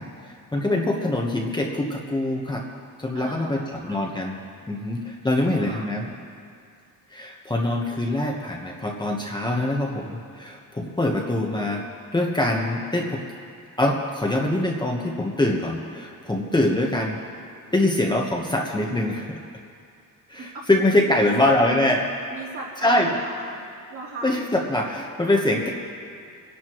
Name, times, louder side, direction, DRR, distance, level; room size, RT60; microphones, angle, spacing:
voice 1, 0.0-2.6 3.0-4.4 4.7-6.1 7.1-11.9 12.1-13.2 13.8-17.2 17.7-19.3 20.3-22.1 22.8-23.1 24.2-25.7, left 1 dB, 10° left, -1 dB, 1.1 m, -24 dB
voice 2, 3.1-4.1 5.5-5.9 16.7-17.0 20.3-20.7 21.1-21.5 22.3-23.6 23.9-24.3, right 2 dB, 55° right, -8 dB, 3.9 m, -37 dB
26.5 x 11.0 x 3.0 m, 2.4 s
cardioid pair, 130°, 36 cm